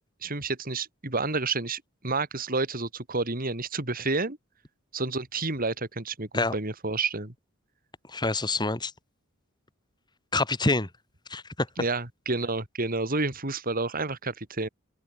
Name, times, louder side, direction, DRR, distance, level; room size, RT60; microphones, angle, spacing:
voice 1, 0.2-4.4 4.9-7.3 11.8-14.7, right 3 dB, 45° right, 3.9 m, -30 dB
voice 2, 8.1-8.9 10.3-10.9 11.3-11.7, left 2 dB, 20° left, 2.3 m, -26 dB
open air
head